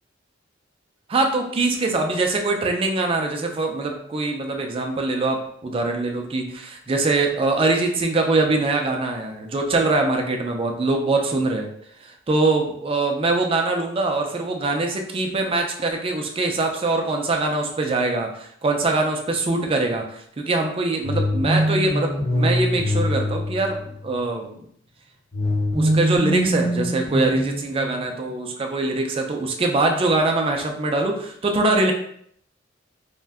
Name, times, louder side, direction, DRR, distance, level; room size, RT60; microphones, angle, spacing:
voice 1, 1.1-11.7 12.0-24.6 25.7-31.9, right 2 dB, 30° right, 3 dB, 0.3 m, -23 dB
sound 1, 21.0-24.2 25.3-28.2, equal, 25° left, 0.8 m, -24 dB
2.5 x 2.1 x 3.4 m, 0.67 s
head